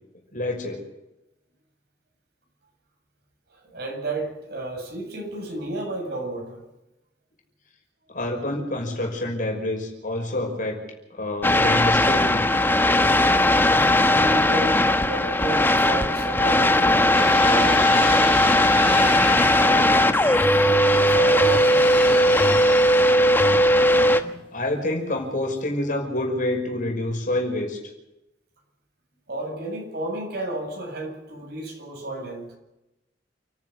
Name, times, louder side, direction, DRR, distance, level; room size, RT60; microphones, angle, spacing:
voice 1, 0.3-0.8 8.1-10.8 11.1-12.7 24.5-27.8, left 1 dB, 50° left, 1 dB, 5.7 m, -27 dB
voice 2, 3.5-6.6 14.0-20.3 20.9-22.6 29.3-32.5, right 2 dB, 65° right, 2 dB, 7.9 m, -32 dB
sound 1, 11.4-24.2, left 1 dB, 10° left, 1.3 m, -18 dB
sound 2, 17.2-23.6 24.2-24.7, left 3 dB, 30° left, 5.4 m, -35 dB
29.0 x 11.0 x 8.2 m, 0.95 s
head